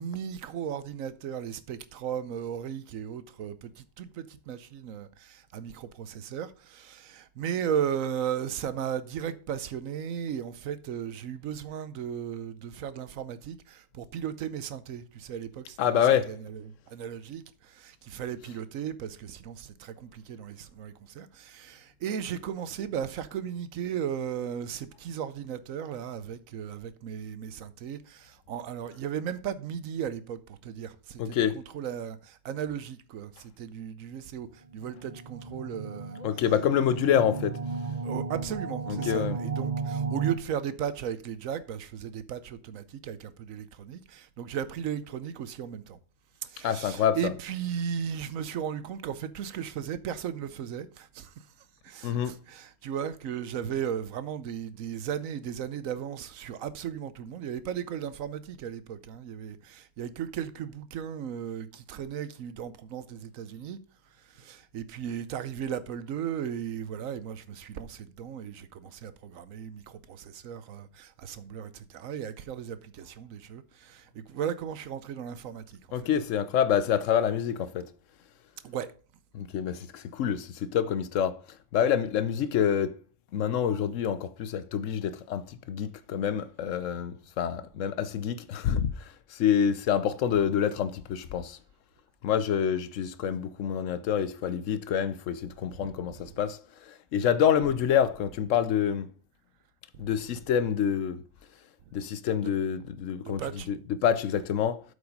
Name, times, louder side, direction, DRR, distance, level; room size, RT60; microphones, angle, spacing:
voice 1, 0.0-36.2 38.0-46.0 46.4-51.5 51.8-63.8 64.2-75.8 78.6-78.9 96.2-96.3 102.4-102.5 103.2-103.7, right 8 dB, 75° right, 1.1 m, -36 dB
voice 2, 15.8-16.4 31.2-31.6 36.2-37.6 38.8-39.4 46.6-47.3 52.0-52.4 75.9-77.9 79.3-83.0 83.3-91.6 92.2-99.1 100.0-101.2 101.9-104.8, left 8 dB, 70° left, 0.9 m, -27 dB
sound 1, 34.7-40.3, right 4 dB, 45° right, 0.8 m, -34 dB
8.1 x 5.1 x 5.3 m
omnidirectional pair, 1.4 m